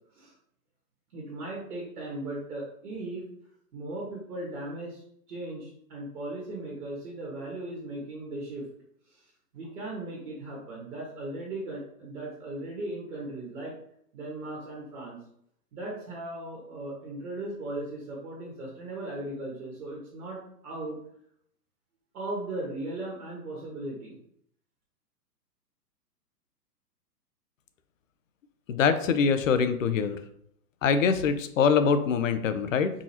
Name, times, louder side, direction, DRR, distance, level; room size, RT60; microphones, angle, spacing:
voice 1, 1.1-3.2 3.7-8.6 9.1-9.2 9.5-13.7 14.1-15.2 15.7-21.0 22.1-24.2, right 2 dB, 60° right, -3 dB, 1.5 m, -37 dB
voice 2, 28.7-30.2 30.8-32.9, left 6 dB, 55° left, 10 dB, 0.5 m, -24 dB
4.6 x 2.9 x 2.9 m, 0.69 s
hypercardioid pair, 125°, 49 cm